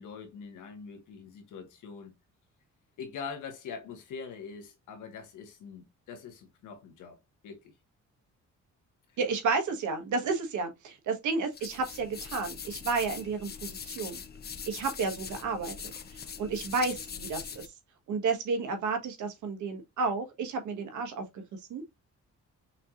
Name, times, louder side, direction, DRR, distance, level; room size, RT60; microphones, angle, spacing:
voice 1, 0.0-2.1 3.0-7.2 7.4-7.6 9.1-9.2, left 5 dB, 85° left, 1.5 m, -43 dB
voice 2, 9.2-14.2 14.7-15.7 16.1-17.7 18.1-21.8, right 4 dB, 75° right, 1.3 m, -32 dB
sound 1, 11.5-17.7, left 7 dB, 35° left, 0.6 m, -42 dB
5.7 x 2.9 x 2.4 m
cardioid pair, 90°, 30 cm